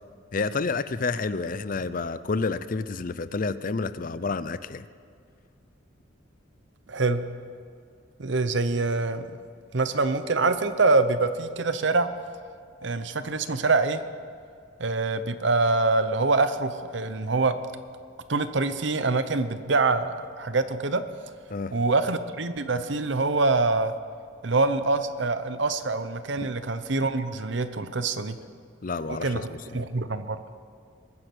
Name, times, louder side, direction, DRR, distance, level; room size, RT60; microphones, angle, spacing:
voice 1, 0.3-4.8 21.5-21.8 28.8-29.4 29.7-29.8, left 4 dB, 45° left, 15 dB, 0.5 m, -29 dB
voice 2, 6.9-7.2 8.2-9.2 9.7-12.1 12.8-14.0 14.8-17.6 18.3-21.0 21.7-23.9 24.4-28.4 29.1-30.4, right 3 dB, 60° right, 11 dB, 0.8 m, -25 dB
22.0 x 9.9 x 6.2 m, 2.3 s
head